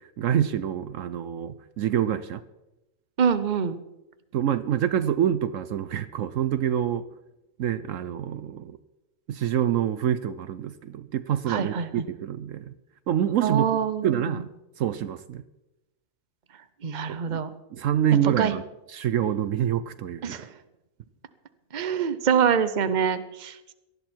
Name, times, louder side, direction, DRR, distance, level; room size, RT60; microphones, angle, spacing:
voice 1, 0.2-2.4 4.3-7.1 7.6-8.8 9.3-12.7 13.1-13.7 14.0-14.5 14.8-15.4 17.1-17.4 17.7-18.6 18.9-20.4, right 10 dB, 70° right, 13 dB, 1.0 m, -26 dB
voice 2, 3.2-3.8 11.5-12.0 13.4-14.4 16.8-17.5 18.4-18.6 20.2-20.5 21.7-23.7, right 7 dB, 40° right, 11 dB, 0.9 m, -25 dB
19.0 x 13.0 x 4.5 m, 0.95 s
omnidirectional pair, 1.4 m